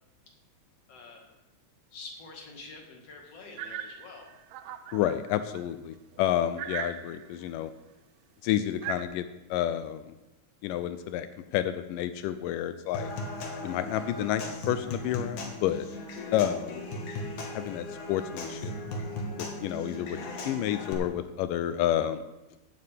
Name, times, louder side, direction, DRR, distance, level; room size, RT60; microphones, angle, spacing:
voice 1, 0.9-1.3 1.9-4.3, left 3 dB, 50° left, 0 dB, 2.9 m, -46 dB
sound 1, 3.6-5.6 6.1-6.2 6.6-7.5 8.8-9.0, right 10 dB, 80° right, 1.6 m, -39 dB
voice 2, 4.9-7.7 8.4-10.1 10.6-11.3 11.5-13.1 13.6-15.9 16.3-16.8 17.5-18.7 19.4-20.2 20.5-22.2, left 11 dB, 85° left, 11 dB, 2.2 m, -30 dB
Human voice / Acoustic guitar / Percussion, 12.9-20.9, left 2 dB, 65° left, 2.9 m, -37 dB
16.0 x 9.4 x 3.5 m, 0.98 s
omnidirectional pair, 3.8 m